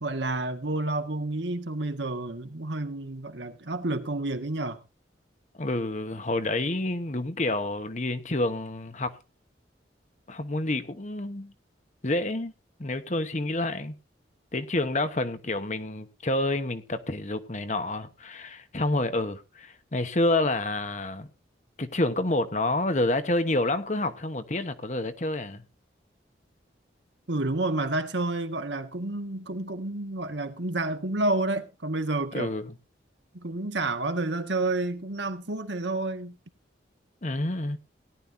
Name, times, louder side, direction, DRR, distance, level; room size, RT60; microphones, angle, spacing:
voice 1, 0.0-4.8 27.3-32.5 33.3-36.4, right 2 dB, 75° right, 1.7 m, -30 dB
voice 2, 5.6-9.1 10.3-11.5 12.0-12.5 12.8-14.0 14.5-21.3 21.8-25.6 32.3-32.7 37.2-37.8, left 2 dB, 40° left, 1.1 m, -28 dB
18.0 x 11.5 x 2.7 m
head